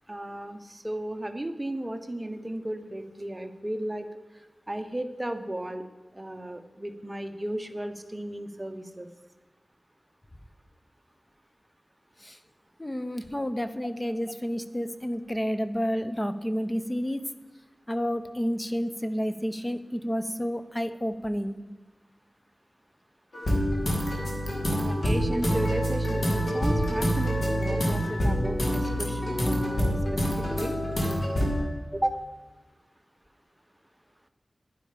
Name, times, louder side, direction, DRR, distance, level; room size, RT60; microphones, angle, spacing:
voice 1, 0.1-4.1 4.7-5.8 6.1-9.1 24.5-30.7 31.9-32.2, right 1 dB, 20° right, 7 dB, 1.0 m, -34 dB
voice 2, 12.8-17.2 17.9-21.6, equal, 15° left, 10 dB, 0.8 m, -30 dB
sound 1, 23.3-31.6, equal, 65° left, 2.9 m, -26 dB
10.5 x 10.0 x 5.1 m, 1.2 s
wide cardioid pair, 75°, 0 cm